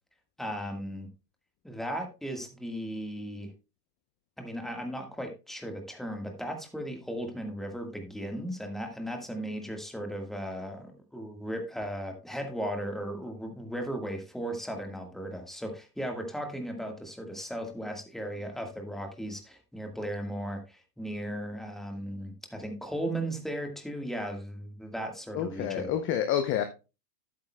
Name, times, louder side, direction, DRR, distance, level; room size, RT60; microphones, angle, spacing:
voice 1, 0.4-1.1 1.6-3.5 4.4-25.9, equal, ahead, 1.5 m, -36 dB
voice 2, 25.3-26.6, left 9 dB, 25° left, 0.7 m, -28 dB
11.5 x 8.6 x 2.2 m
hypercardioid pair, 120°, 48 cm